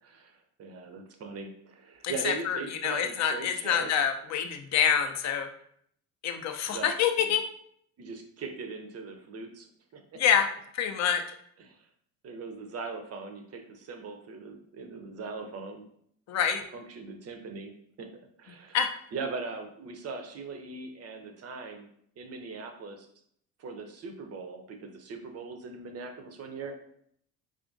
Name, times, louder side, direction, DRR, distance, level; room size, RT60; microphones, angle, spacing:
voice 1, 0.0-3.9 6.7-6.9 8.0-9.7 9.9-10.2 11.6-11.8 12.2-15.8 16.7-17.7 18.0-18.1 18.4-18.8 19.1-21.8 22.2-23.1 23.6-26.7, right 4 dB, 35° right, 6 dB, 0.6 m, -40 dB
voice 2, 2.0-5.5 6.2-7.5 10.2-10.5 10.7-11.2 16.3-16.6 18.7-18.9, left 8 dB, 35° left, 6 dB, 0.6 m, -26 dB
4.9 x 2.4 x 2.5 m, 0.67 s
figure-of-eight pair, 55°, 46 cm